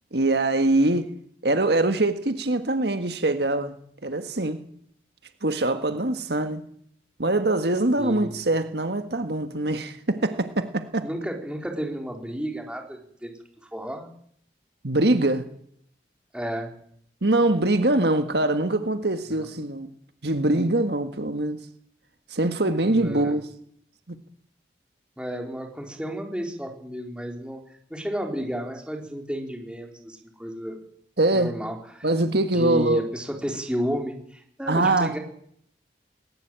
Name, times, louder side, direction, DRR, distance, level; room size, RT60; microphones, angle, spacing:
voice 1, 0.1-1.1 1.4-3.7 4.0-4.6 5.4-6.6 7.2-11.1 14.8-15.4 17.2-19.9 20.2-21.6 22.3-23.5 31.2-31.5 32.0-33.0 34.7-35.1, right 2 dB, 65° right, 9 dB, 1.7 m, -23 dB
voice 2, 8.0-8.4 11.0-13.3 13.7-14.1 16.3-16.7 19.3-19.5 22.8-23.4 25.2-27.6 27.9-30.8 31.3-32.1 32.5-35.2, equal, 5° right, 2 dB, 4.0 m, -32 dB
20.0 x 18.5 x 9.0 m, 0.65 s
head